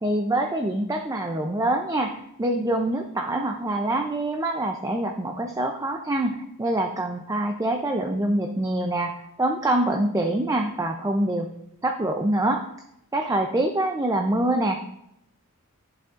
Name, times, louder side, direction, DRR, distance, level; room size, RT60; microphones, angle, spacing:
voice 1, 0.0-11.5 11.8-12.6 13.1-14.9, right 1 dB, 15° right, 4 dB, 0.4 m, -25 dB
11.0 x 7.4 x 2.5 m, 0.81 s
head